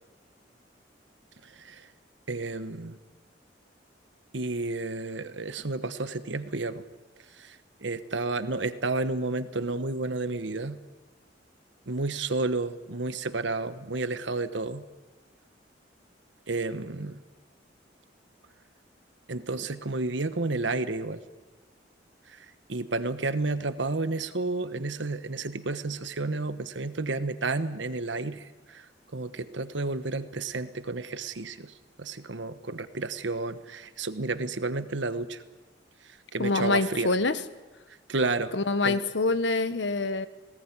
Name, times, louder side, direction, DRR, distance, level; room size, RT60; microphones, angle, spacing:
voice 1, 1.4-1.9 2.3-3.0 4.3-6.8 7.4-10.8 11.9-14.8 16.5-17.2 19.3-21.2 22.3-35.4 36.3-37.1 38.1-38.5 38.8-39.0, right 3 dB, 80° right, 12 dB, 1.2 m, -31 dB
voice 2, 36.4-37.4 38.5-40.3, left 3 dB, 75° left, 13 dB, 1.2 m, -26 dB
19.0 x 18.5 x 9.8 m, 1.2 s
head